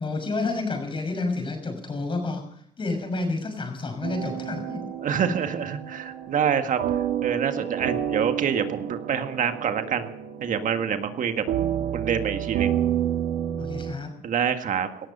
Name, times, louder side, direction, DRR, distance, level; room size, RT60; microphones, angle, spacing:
voice 1, 0.0-2.4 2.8-4.8 13.6-14.2, left 3 dB, 30° left, 5 dB, 6.2 m, -29 dB
sound 1, 4.0-13.9, right 10 dB, 80° right, 1.8 m, -30 dB
voice 2, 5.0-6.8 7.2-10.1 10.4-11.4 11.9-12.7 14.2-14.9, right 7 dB, 50° right, 8 dB, 1.8 m, -26 dB
18.5 x 13.5 x 5.6 m, 0.68 s
cardioid pair, 110°, 17 cm